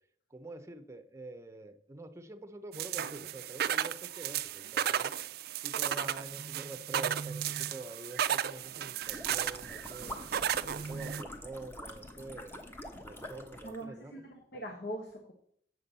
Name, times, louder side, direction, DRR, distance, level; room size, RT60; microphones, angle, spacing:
voice 1, 0.3-5.1 5.6-10.2 10.7-12.7 13.0-14.2, right 2 dB, 15° right, 8 dB, 0.8 m, -46 dB
sound 1, 2.7-11.2, right 9 dB, 60° right, 0.4 m, -34 dB
sound 2, 9.0-13.8, left 1 dB, 15° left, 1.1 m, -46 dB
voice 2, 13.6-15.3, right 1 dB, 65° left, 3 dB, 1.2 m, -42 dB
7.8 x 5.8 x 6.8 m, 0.64 s
head